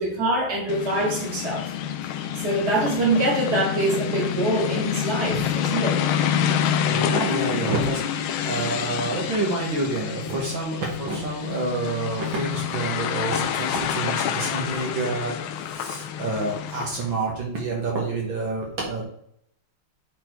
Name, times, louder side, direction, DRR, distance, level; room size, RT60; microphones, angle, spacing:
voice 1, 0.0-1.7 2.0-6.0, right 1 dB, 30° right, -3 dB, 2.7 m, -24 dB
sound 1, 0.7-17.1, left 9 dB, 75° left, 1.5 m, -27 dB
voice 2, 6.9-15.3 15.7-19.0, right 3 dB, 60° right, -2 dB, 2.3 m, -28 dB
9.9 x 4.3 x 4.6 m, 0.71 s
omnidirectional pair, 2.4 m